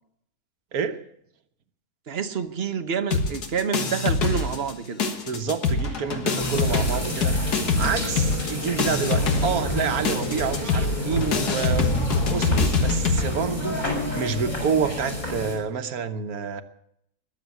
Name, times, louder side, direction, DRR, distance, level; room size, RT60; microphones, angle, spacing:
voice 1, 2.1-5.0, right 7 dB, 45° right, 1.1 m, -28 dB
sound 1, 3.1-4.7 5.0-13.2, left 3 dB, 80° left, 2.0 m, -25 dB
voice 2, 5.3-13.9 14.1-16.6, right 6 dB, 65° right, 1.4 m, -28 dB
sound 2, 6.4-15.5, left 2 dB, 50° left, 6.2 m, -29 dB
21.0 x 7.3 x 9.4 m
omnidirectional pair, 1.7 m